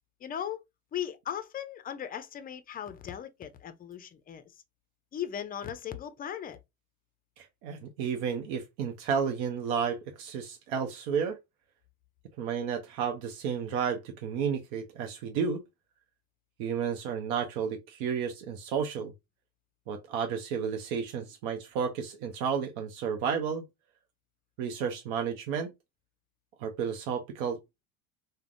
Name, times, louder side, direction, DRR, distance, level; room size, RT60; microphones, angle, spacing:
voice 1, 0.2-0.6 0.9-4.5 5.1-6.6, left 9 dB, 20° left, 0.4 m, -37 dB
voice 2, 7.4-11.4 12.4-15.6 16.6-19.1 19.9-23.7 24.6-25.7 26.6-27.6, right 7 dB, 70° right, 0.7 m, -32 dB
3.3 x 2.1 x 2.4 m
supercardioid pair, 95°, 42 cm